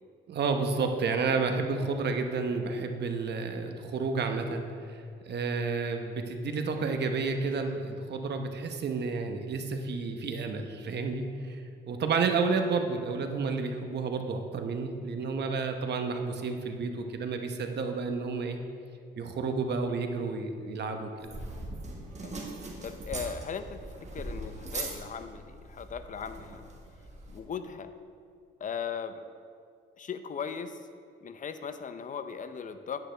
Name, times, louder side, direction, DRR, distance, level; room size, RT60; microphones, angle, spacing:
voice 1, 0.3-18.6 19.2-21.1, right 4 dB, 60° right, 5 dB, 0.9 m, -31 dB
sound 1, 21.2-27.4, right 2 dB, 35° right, 1.5 m, -41 dB
voice 2, 22.8-26.6 27.3-27.9 28.6-29.2 30.0-30.8 31.2-33.0, left 6 dB, 40° left, 10 dB, 0.6 m, -38 dB
9.8 x 8.9 x 3.4 m, 2.4 s
cardioid pair, 90°, 20 cm